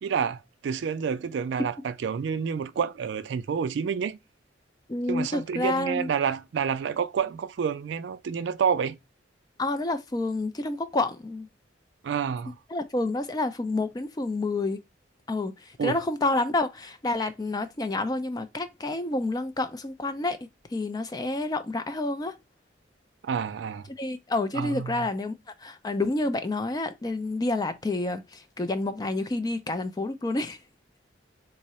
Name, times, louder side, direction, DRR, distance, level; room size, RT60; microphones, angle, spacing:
voice 1, 0.0-4.2 5.1-9.0 12.0-12.5 15.8-16.0 23.2-23.9 24.5-25.0, right 7 dB, 65° right, 0.3 m, -29 dB
voice 2, 4.9-6.1 9.6-11.5 12.7-14.8 15.3-22.4 24.0-25.3 25.6-30.6, left 2 dB, 20° left, 0.3 m, -29 dB
3.6 x 2.0 x 4.1 m
head